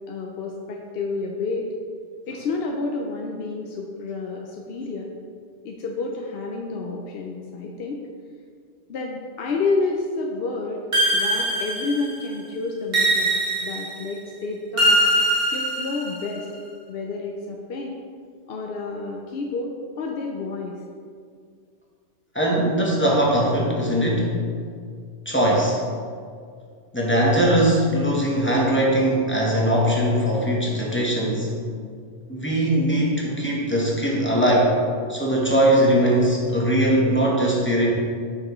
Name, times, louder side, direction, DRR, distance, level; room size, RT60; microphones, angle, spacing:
voice 1, 0.1-1.7 2.3-5.1 5.6-8.0 8.9-10.8 11.1-15.0 15.5-16.5 16.9-18.0 18.5-20.8, left 3 dB, 65° left, 0 dB, 0.8 m, -29 dB
sound 1, 10.9-12.3 12.9-14.1 14.8-16.3, right 1 dB, 40° right, 1.3 m, -22 dB
voice 2, 22.3-24.4 25.2-25.8 26.9-31.6 32.3-34.7 35.1-37.9, right 1 dB, 10° left, -4 dB, 1.0 m, -20 dB
7.7 x 5.8 x 3.1 m, 2.2 s
omnidirectional pair, 1.2 m